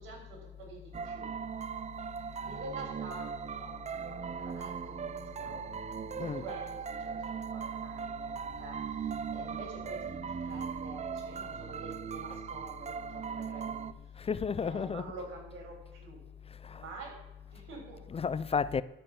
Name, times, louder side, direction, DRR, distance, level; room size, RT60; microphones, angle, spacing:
voice 1, 0.0-1.4 2.4-5.7 6.2-13.9 14.2-14.3 14.6-16.2 16.7-17.2 17.5-18.0, right 3 dB, 85° right, 3.9 m, -47 dB
sound 1, 0.9-13.9, right 7 dB, 35° right, 0.6 m, -39 dB
voice 2, 14.2-15.1 16.6-16.9 18.1-18.8, left 6 dB, 30° left, 0.4 m, -32 dB
12.5 x 5.5 x 7.1 m
cardioid pair, 90°, 20 cm